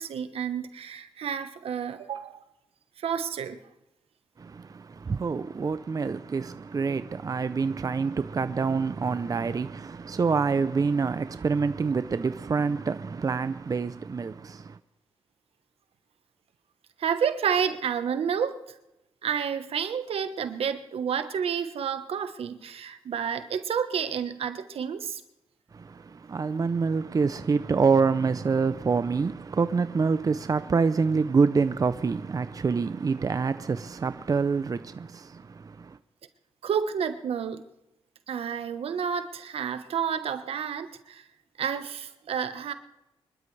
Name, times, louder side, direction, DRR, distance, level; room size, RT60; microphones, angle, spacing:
voice 1, 0.0-2.4 3.0-3.7 17.0-18.7 19.2-25.2 36.6-37.6 38.3-41.2 41.6-42.7, right 7 dB, 80° right, 1.2 m, -30 dB
voice 2, 4.4-14.8 25.7-36.0, right 5 dB, 40° right, 0.6 m, -26 dB
25.5 x 12.5 x 3.4 m
cardioid pair, 70°, 10 cm